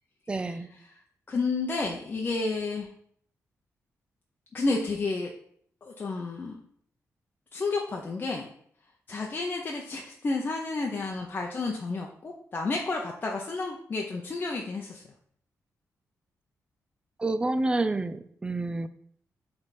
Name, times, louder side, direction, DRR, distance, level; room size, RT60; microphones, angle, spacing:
voice 1, 0.3-0.7 17.2-18.9, right 2 dB, 15° right, 11 dB, 0.4 m, -28 dB
voice 2, 1.3-2.9 4.5-5.3 5.8-6.6 7.5-8.5 9.1-15.0, left 3 dB, 35° left, -1 dB, 0.7 m, -31 dB
7.7 x 3.5 x 4.2 m, 0.65 s
wide cardioid pair, 135°, 6 cm